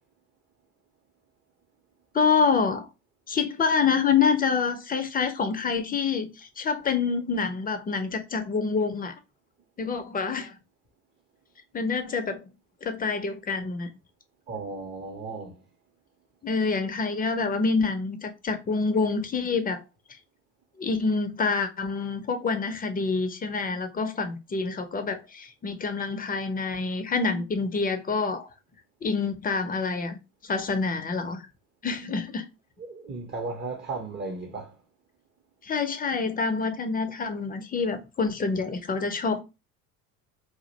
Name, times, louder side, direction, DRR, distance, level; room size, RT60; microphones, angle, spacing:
voice 1, 2.1-2.9 3.3-9.1 9.8-10.6 11.7-12.4 12.8-13.9 16.4-19.8 20.8-28.5 29.0-31.4 31.8-32.5 35.6-39.4, left 5 dB, 20° left, 0.5 m, -27 dB
voice 2, 14.5-15.5 32.9-34.7, right 3 dB, 25° right, 0.6 m, -35 dB
2.5 x 2.1 x 3.8 m
hypercardioid pair, 65°, 46 cm